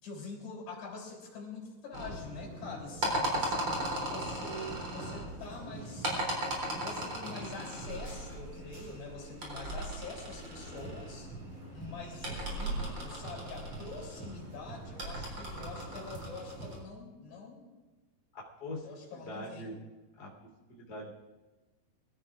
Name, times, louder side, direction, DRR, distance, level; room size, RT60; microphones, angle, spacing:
voice 1, 0.0-6.2 6.7-11.3 11.7-17.7 18.8-19.7, left 3 dB, 80° left, -2 dB, 5.5 m, -45 dB
sound 1, 1.9-16.8, right 1 dB, 30° right, 4.4 m, -38 dB
voice 2, 18.3-18.9 19.2-19.8 20.2-21.1, left 1 dB, 30° left, -3 dB, 3.9 m, -43 dB
24.0 x 16.5 x 2.5 m, 1.2 s
omnidirectional pair, 4.7 m